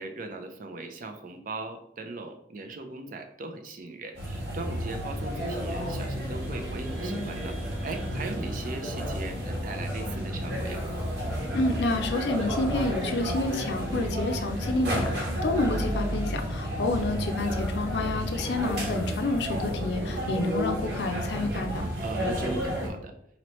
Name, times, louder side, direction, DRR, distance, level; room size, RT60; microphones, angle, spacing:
voice 1, 0.0-7.6 7.8-10.8 16.6-17.0 22.0-23.1, right 3 dB, 50° right, 6 dB, 0.5 m, -39 dB
sound 1, 4.1-22.9, equal, 65° right, 1.2 m, -31 dB
voice 2, 11.5-21.9, left 2 dB, 65° left, 4 dB, 0.5 m, -29 dB
4.1 x 3.0 x 3.0 m, 0.73 s
head